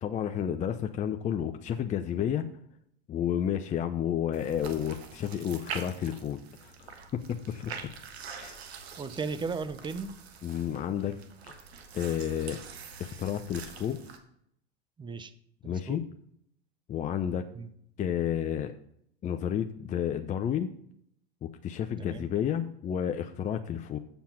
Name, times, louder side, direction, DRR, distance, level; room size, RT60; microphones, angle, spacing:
voice 1, 0.0-2.5 3.1-7.7 8.3-8.6 10.4-11.2 11.4-11.5 11.9-12.6 13.0-14.0 15.6-16.0 16.9-17.5 18.0-18.7 19.2-20.7 21.4-24.0, left 9 dB, 25° left, 7 dB, 0.5 m, -31 dB
sound 1, 4.3-14.2, right 6 dB, 80° right, 1.4 m, -45 dB
voice 2, 9.0-10.1 15.0-15.3 15.6-16.0 17.5-17.7 22.0-22.3, right 4 dB, 15° right, 12 dB, 0.7 m, -36 dB
7.4 x 6.9 x 5.8 m, 0.69 s
hypercardioid pair, 100°, 31 cm